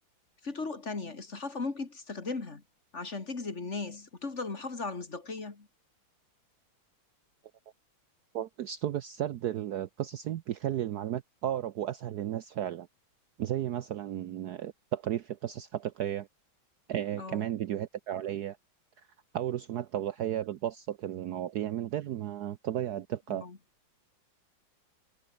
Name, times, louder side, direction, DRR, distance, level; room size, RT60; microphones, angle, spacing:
voice 1, 0.4-2.6 2.9-5.7 17.1-17.5 23.3-23.6, left 3 dB, 35° left, 2.5 m, -37 dB
voice 2, 8.3-12.9 13.4-16.3 16.9-18.6 19.3-23.4, right 11 dB, 65° right, 1.1 m, -34 dB
omnidirectional pair, 2.2 m